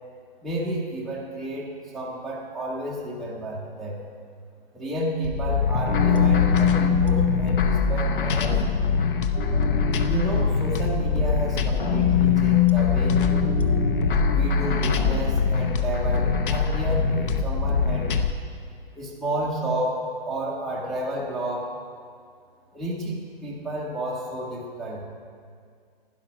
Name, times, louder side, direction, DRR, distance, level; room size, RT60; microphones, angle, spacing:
voice 1, 0.4-4.0 4.7-8.6 8.9-9.1 10.1-13.2 14.3-18.1 19.0-21.7 22.7-25.0, right 1 dB, ahead, -6 dB, 0.5 m, -31 dB
sound 1, 5.2-18.3, left 5 dB, 60° left, 0.9 m, -24 dB
sound 2, 5.9-15.0, left 7 dB, 90° left, 2.2 m, -24 dB
12.0 x 9.6 x 5.8 m, 2.2 s
hypercardioid pair, 150°, 30 cm